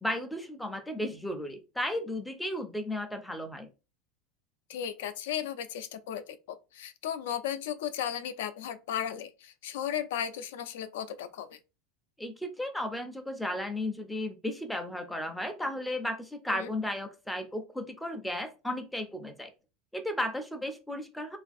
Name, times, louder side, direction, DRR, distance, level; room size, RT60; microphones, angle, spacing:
voice 1, 0.0-3.7 12.2-19.5 19.9-21.4, left 1 dB, ahead, 0.4 m, -34 dB
voice 2, 4.7-11.6 16.5-16.7, left 9 dB, 85° left, 0.3 m, -35 dB
3.2 x 2.3 x 2.5 m
supercardioid pair, 170°, 0 cm